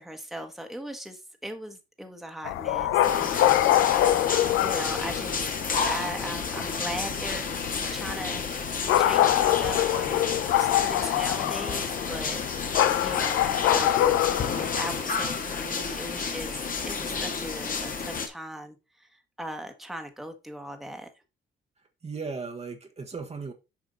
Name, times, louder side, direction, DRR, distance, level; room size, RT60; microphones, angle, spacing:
voice 1, 0.0-3.9 4.3-5.5 5.9-7.6 7.9-14.3 14.7-16.6 16.8-21.1, right 1 dB, ahead, 1.4 m, -39 dB
sound 1, 2.4-15.0, left 13 dB, 85° left, 0.6 m, -25 dB
sound 2, 3.0-18.3, left 5 dB, 45° left, 1.6 m, -31 dB
voice 2, 22.0-23.5, right 4 dB, 30° right, 1.3 m, -36 dB
7.5 x 4.8 x 4.0 m
cardioid pair, 90°, 20 cm